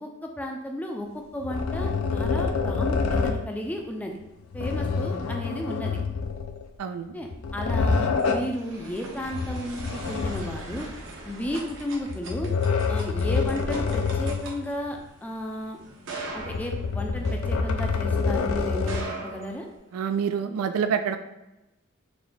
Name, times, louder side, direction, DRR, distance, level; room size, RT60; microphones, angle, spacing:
voice 1, 0.0-4.2 4.5-6.0 7.1-10.9 11.3-12.5 12.9-15.8 16.3-19.6, equal, 5° left, 2 dB, 0.4 m, -34 dB
sound 1, 1.4-3.5 4.5-6.7 7.2-8.6 9.3-10.8 12.1-14.6 14.9-15.0 16.4-19.2, left 4 dB, 70° left, 0.4 m, -27 dB
voice 2, 6.8-7.2 19.9-21.2, right 7 dB, 90° right, 8 dB, 0.3 m, -27 dB
sound 2, 7.8-18.1 18.7-20.2, right 2 dB, 60° right, 0.8 m, -41 dB
3.9 x 2.2 x 3.2 m, 0.97 s
head